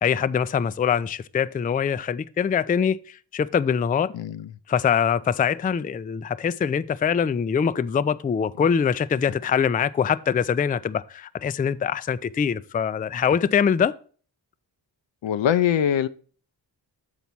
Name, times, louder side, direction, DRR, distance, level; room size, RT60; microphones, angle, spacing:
voice 1, 0.0-4.1 4.7-13.9, left 7 dB, 20° left, 0.3 m, -23 dB
voice 2, 4.1-4.5 8.6-8.7 9.3-9.4 15.2-16.1, left 9 dB, 80° left, 0.6 m, -23 dB
7.1 x 4.1 x 5.9 m
cardioid pair, 50°, 45 cm